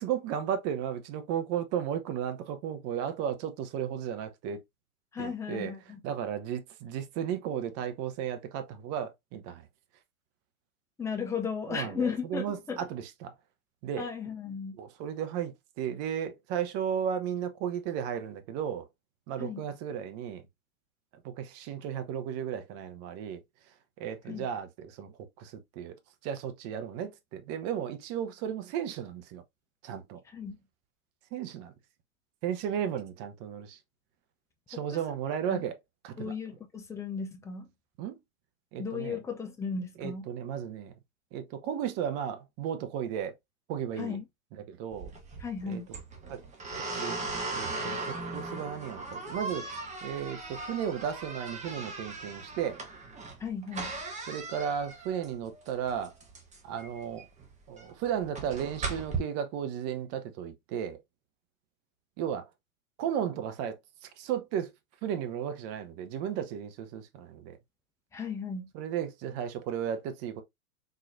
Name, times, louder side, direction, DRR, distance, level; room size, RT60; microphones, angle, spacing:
voice 1, 0.0-4.6 5.2-5.7 6.0-9.7 11.7-13.3 13.8-14.1 14.8-18.9 19.3-20.4 21.1-23.4 24.0-26.0 26.2-29.4 29.8-30.2 31.3-31.7 32.4-33.8 34.7-35.8 36.0-36.3 38.0-38.2 38.7-39.2 40.0-40.9 41.3-43.3 43.7-44.2 44.5-45.1 45.7-45.8 46.3-46.4 46.7-47.2 47.6-49.7 50.0-52.8 54.3-56.1 56.6-57.3 57.7-61.0 62.2-62.5 63.0-64.7 65.0-67.6 68.7-70.4, right 9 dB, 35° right, 0.7 m, -34 dB
voice 2, 5.1-6.0 11.0-12.8 14.0-14.8 19.4-19.6 24.3-24.5 30.3-30.6 34.9-35.0 35.5-35.7 36.2-37.7 38.8-40.3 44.0-44.2 45.4-45.9 53.4-53.9 68.1-68.7, left 6 dB, 5° left, 0.5 m, -35 dB
sound 1, 44.9-59.2, right 3 dB, 15° right, 1.0 m, -38 dB
3.8 x 3.1 x 2.5 m
hypercardioid pair, 110°, 42 cm